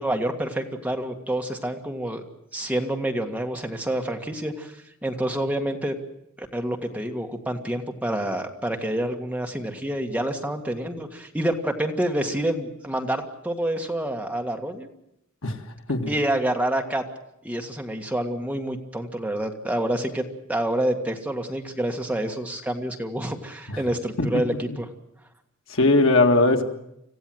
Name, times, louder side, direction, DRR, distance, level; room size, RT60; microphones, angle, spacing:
voice 1, 0.0-2.2 2.5-6.0 6.4-14.9 16.1-17.0 17.4-20.2 20.5-24.9, right 1 dB, 5° right, 3 dB, 1.8 m, -28 dB
voice 2, 25.7-26.7, left 2 dB, 65° left, 5 dB, 2.0 m, -20 dB
26.5 x 15.5 x 7.9 m, 0.81 s
head